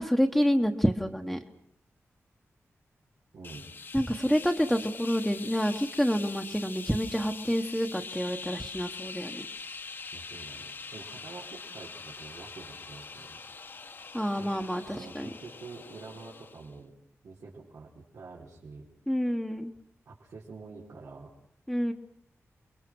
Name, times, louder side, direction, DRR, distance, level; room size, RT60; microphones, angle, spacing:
voice 1, 0.0-1.4 3.9-9.4 14.1-15.3 19.1-19.7 21.7-21.9, equal, ahead, 3 dB, 1.1 m, -28 dB
voice 2, 3.3-3.7 10.1-13.4 14.4-16.9 17.2-18.9 20.1-21.3, right 4 dB, 90° right, -5 dB, 4.1 m, -47 dB
sound 1, 3.4-16.8, left 4 dB, 45° left, 1.1 m, -43 dB
30.0 x 22.5 x 6.2 m, 0.69 s
wide cardioid pair, 175°, 5 cm